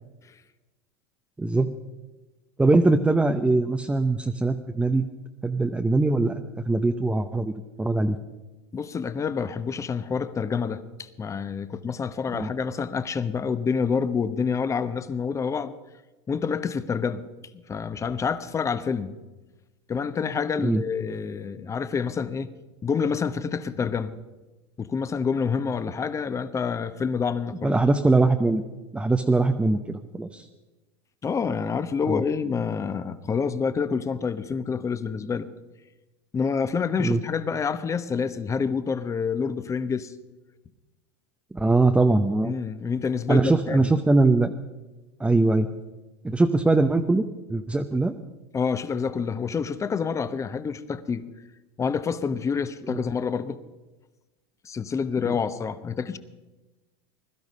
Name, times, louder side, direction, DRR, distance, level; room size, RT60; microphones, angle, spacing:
voice 1, 1.4-1.7 2.6-5.1 5.4-6.3 6.6-8.2 12.3-12.5 20.6-20.8 27.6-28.6 28.9-30.5 32.1-32.2 37.0-37.2 41.5-42.5 43.3-44.5 45.2-45.7 46.2-47.2 47.5-48.1 52.9-53.0 55.2-55.3, right 2 dB, 10° right, 6 dB, 0.8 m, -22 dB
voice 2, 8.7-15.7 16.3-17.3 17.5-19.1 19.9-22.5 22.8-24.1 24.8-27.7 31.2-35.5 36.3-40.1 42.4-43.8 48.5-51.2 51.8-53.6 54.6-56.2, left 6 dB, 25° left, 12 dB, 1.1 m, -27 dB
21.0 x 12.0 x 5.5 m, 1.2 s
hypercardioid pair, 105°, 13 cm